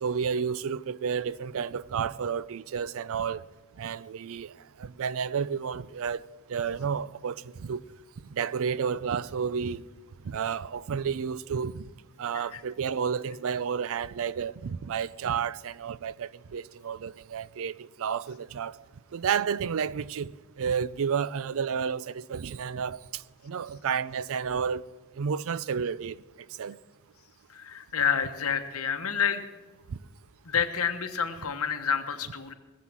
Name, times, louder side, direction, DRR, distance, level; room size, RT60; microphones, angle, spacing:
voice 1, 0.0-3.4 3.8-4.5 4.8-6.2 6.5-7.8 8.3-9.8 10.2-11.8 12.2-18.8 19.1-24.8 25.2-26.2 26.6-26.8 29.9-30.0, right 6 dB, 65° right, 0.4 m, -31 dB
voice 2, 27.5-29.4 30.4-32.5, left 7 dB, 70° left, 1.2 m, -29 dB
19.0 x 7.6 x 7.5 m
head